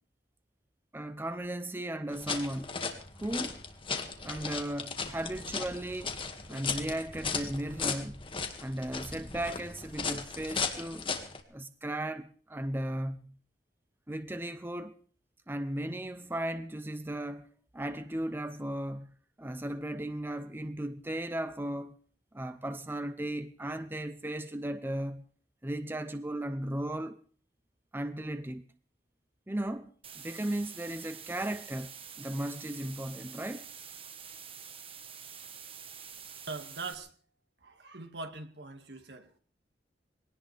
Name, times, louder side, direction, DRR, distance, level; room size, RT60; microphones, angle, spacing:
voice 1, 0.9-2.8 3.2-3.6 4.2-6.2 6.5-8.2 8.6-11.1 11.5-13.3 14.1-15.0 15.5-17.5 17.7-19.1 19.4-22.0 22.3-25.2 25.6-27.2 27.9-28.6 29.5-31.9 32.2-33.7, right 1 dB, 10° right, 0.7 m, -36 dB
sound 1, 2.1-11.4, left 5 dB, 30° left, 2.1 m, -36 dB
sound 2, 30.0-36.9, right 7 dB, 30° right, 1.5 m, -47 dB
voice 2, 36.5-37.1 37.6-39.4, right 3 dB, 70° right, 2.2 m, -42 dB
22.5 x 18.0 x 3.5 m
head